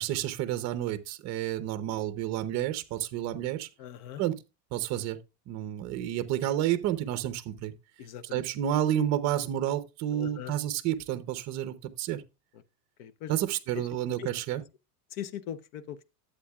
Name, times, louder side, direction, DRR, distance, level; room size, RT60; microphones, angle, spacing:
voice 1, 0.0-3.7 4.2-4.4 4.7-7.7 8.3-12.2 13.3-14.6, right 12 dB, 35° right, 0.8 m, -30 dB
voice 2, 3.8-4.2 8.0-8.4 10.1-10.5 13.0-13.3 13.7-13.8 14.2-14.3 15.1-16.0, left 9 dB, 45° left, 0.7 m, -40 dB
11.5 x 8.3 x 2.3 m
supercardioid pair, 155°, 48 cm